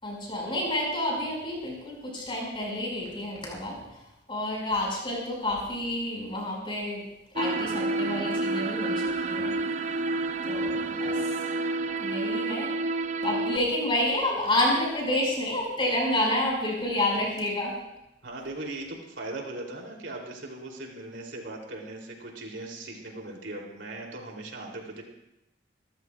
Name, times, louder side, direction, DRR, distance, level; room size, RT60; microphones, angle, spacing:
voice 1, 0.0-4.0 4.3-7.0 7.3-9.6 10.5-11.3 12.0-12.7 13.2-17.8, left 1 dB, 30° left, -2 dB, 5.7 m, -29 dB
sound 1, 7.4-13.6, right 2 dB, 40° right, 0.5 m, -29 dB
voice 2, 10.5-11.0 18.2-25.0, right 2 dB, 90° right, 0 dB, 3.2 m, -39 dB
26.0 x 14.0 x 2.4 m, 0.87 s
head